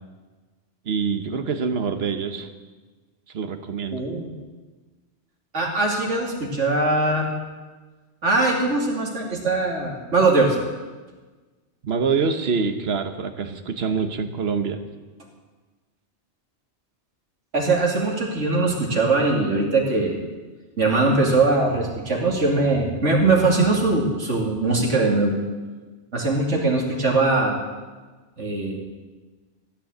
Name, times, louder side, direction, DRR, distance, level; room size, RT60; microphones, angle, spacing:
voice 1, 0.8-2.5 3.3-4.0 11.8-14.8, right 5 dB, 60° right, 8 dB, 1.3 m, -25 dB
voice 2, 3.9-4.3 5.5-7.3 8.2-10.6 17.5-20.2 20.8-25.4 26.1-27.6 28.4-28.8, right 3 dB, 85° right, 0 dB, 2.9 m, -21 dB
15.0 x 9.9 x 7.8 m, 1.3 s
omnidirectional pair, 1.2 m